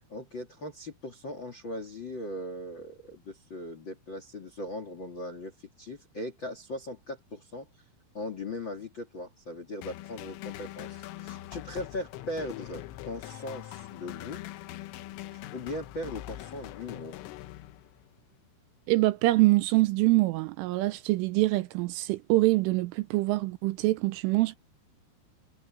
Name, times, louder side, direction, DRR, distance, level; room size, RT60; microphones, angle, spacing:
voice 1, 0.1-7.7 8.1-14.4 15.3-17.1, left 1 dB, 40° left, 1.8 m, -39 dB
sound 1, 9.8-18.1, left 14 dB, 80° left, 3.5 m, -43 dB
voice 2, 18.9-24.6, right 20 dB, 80° right, 3.1 m, -25 dB
omnidirectional pair, 6.0 m